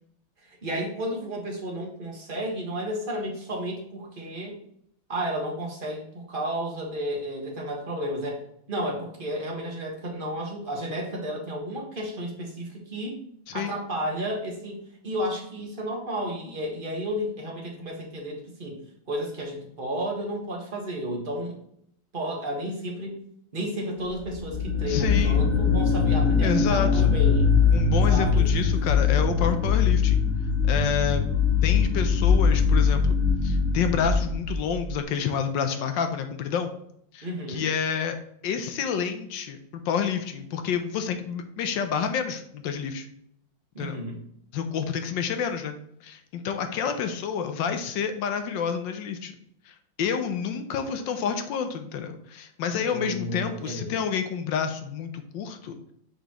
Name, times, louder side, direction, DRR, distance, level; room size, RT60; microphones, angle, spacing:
voice 1, 0.4-4.6 5.1-8.4 8.7-13.2 13.5-18.8 19.1-21.6 22.1-23.2 23.5-27.5 28.1-28.5 37.2-37.6 43.7-44.2 52.9-54.0, equal, 30° right, -1 dB, 1.4 m, -32 dB
sound 1, 24.3-34.9, left 5 dB, 40° left, 1.5 m, -22 dB
voice 2, 24.9-25.4 26.4-27.1 27.7-30.2 30.7-31.2 31.6-33.2 33.4-36.7 37.1-38.2 38.4-43.1 43.8-44.0 44.5-45.8 46.0-49.3 49.7-55.8, left 7 dB, 75° left, 7 dB, 1.3 m, -29 dB
6.3 x 5.2 x 3.0 m, 0.72 s
omnidirectional pair, 2.1 m